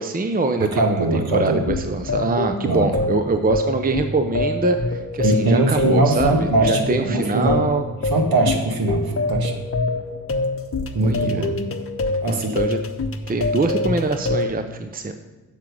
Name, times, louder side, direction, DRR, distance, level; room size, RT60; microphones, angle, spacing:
voice 1, 0.0-7.8 11.0-11.5 12.3-12.8 13.3-15.1, right 3 dB, 20° right, 7 dB, 0.7 m, -24 dB
voice 2, 0.6-1.6 2.6-3.2 5.2-7.6 8.0-9.5 10.9-11.5 12.2-12.6, right 2 dB, 55° right, 4 dB, 1.7 m, -21 dB
sound 1, 1.3-14.5, left 2 dB, 30° left, 1.1 m, -25 dB
7.5 x 7.5 x 5.3 m, 1.3 s
hypercardioid pair, 40°, 44 cm